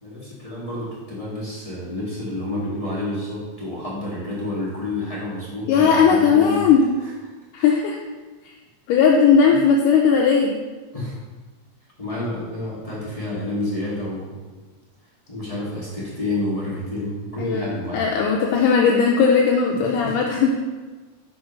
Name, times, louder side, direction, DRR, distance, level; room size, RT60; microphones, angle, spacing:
voice 1, 0.0-6.6 7.0-7.1 7.6-7.8 9.5-9.6 10.9-11.2 12.0-14.4 15.3-18.1 19.7-20.1, left 1 dB, 20° left, -9 dB, 1.0 m, -29 dB
voice 2, 5.7-6.9 7.5-8.0 8.9-10.5 17.4-20.5, left 6 dB, 80° left, 0 dB, 2.1 m, -17 dB
6.1 x 5.0 x 5.1 m, 1.3 s
omnidirectional pair, 3.8 m